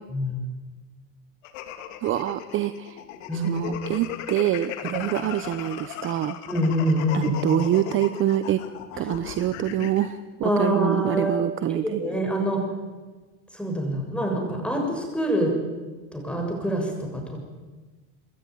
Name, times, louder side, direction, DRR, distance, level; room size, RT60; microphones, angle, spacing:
sound 1, 1.4-10.1, left 11 dB, 90° left, 3.4 m, -37 dB
voice 1, 2.0-3.0 3.4-6.4 7.1-8.6 9.0-12.0, right 12 dB, 35° right, 13 dB, 0.9 m, -25 dB
voice 2, 3.3-3.6 4.8-5.1 6.5-7.3 9.0-9.1 10.4-11.4 11.7-12.6 13.5-15.5 16.1-17.4, equal, 5° left, 2 dB, 6.9 m, -26 dB
26.5 x 21.5 x 9.6 m, 1.3 s
cardioid pair, 155°, 37 cm